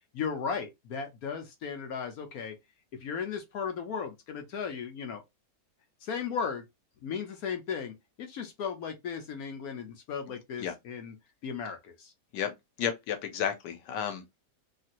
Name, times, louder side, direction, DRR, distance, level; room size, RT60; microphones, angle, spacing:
voice 1, 0.1-2.5 3.0-5.2 6.0-6.6 7.0-11.2 11.4-12.1, left 6 dB, 65° left, 1.1 m, -36 dB
voice 2, 12.8-14.4, left 8 dB, 85° left, 1.3 m, -32 dB
3.1 x 2.8 x 2.5 m
omnidirectional pair, 1.8 m